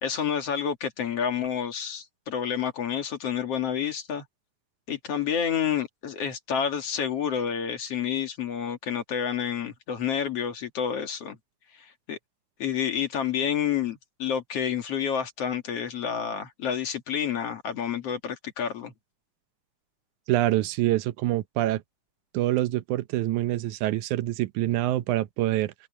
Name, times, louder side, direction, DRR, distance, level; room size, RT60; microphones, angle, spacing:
voice 1, 0.0-4.3 4.9-11.4 11.7-12.2 12.6-18.9, left 8 dB, 55° left, 2.7 m, -29 dB
voice 2, 20.3-21.8 22.3-25.7, right 15 dB, 80° right, 2.2 m, -25 dB
open air
omnidirectional pair, 3.4 m